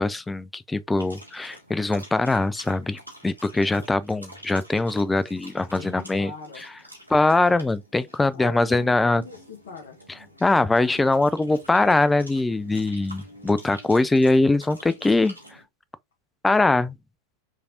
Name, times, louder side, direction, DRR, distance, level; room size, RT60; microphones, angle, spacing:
voice 1, 0.0-6.3 7.1-9.2 10.4-15.3 16.4-17.0, left 2 dB, 10° left, 0.4 m, -22 dB
sound 1, 1.0-15.6, equal, 90° left, 2.0 m, -47 dB
voice 2, 5.7-6.6 8.3-10.0, left 5 dB, 60° left, 1.3 m, -41 dB
4.6 x 3.3 x 2.7 m
figure-of-eight pair, 90°, 0 cm